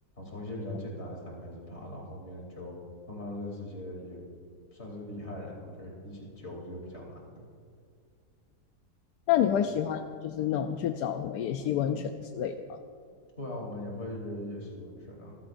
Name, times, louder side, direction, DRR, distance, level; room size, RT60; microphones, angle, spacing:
voice 1, 0.2-2.8 3.1-4.3 4.7-7.4 9.4-9.5 13.4-15.4, left 1 dB, 40° left, -3 dB, 3.7 m, -40 dB
voice 2, 9.3-12.8, left 9 dB, 80° left, 6 dB, 1.2 m, -29 dB
27.5 x 15.0 x 2.6 m, 2.2 s
omnidirectional pair, 1.8 m